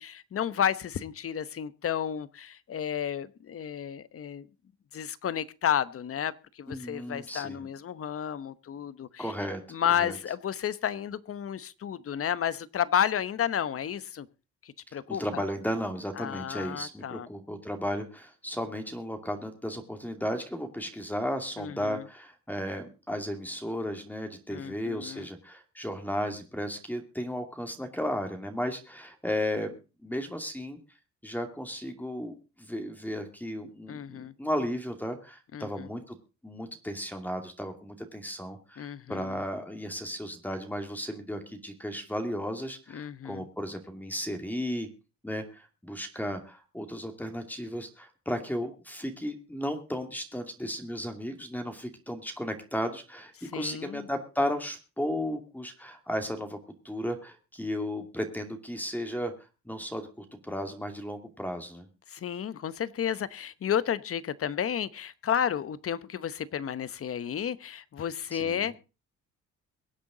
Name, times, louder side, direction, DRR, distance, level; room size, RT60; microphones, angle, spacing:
voice 1, 0.0-4.5 4.9-9.3 9.7-14.3 14.6-15.4 16.2-17.3 21.6-22.0 24.5-25.3 33.9-34.3 35.5-35.9 38.8-39.4 42.9-43.5 53.5-54.1 62.1-68.8, left 9 dB, 50° left, 16 dB, 1.0 m, -32 dB
voice 2, 6.7-7.7 9.2-9.6 9.9-10.2 15.1-30.8 31.2-36.2 36.4-44.9 45.2-56.6 56.8-59.3 59.6-61.9 68.3-68.7, equal, 5° left, 5 dB, 2.5 m, -34 dB
23.0 x 8.3 x 3.9 m, 0.32 s
cardioid pair, 90°, 30 cm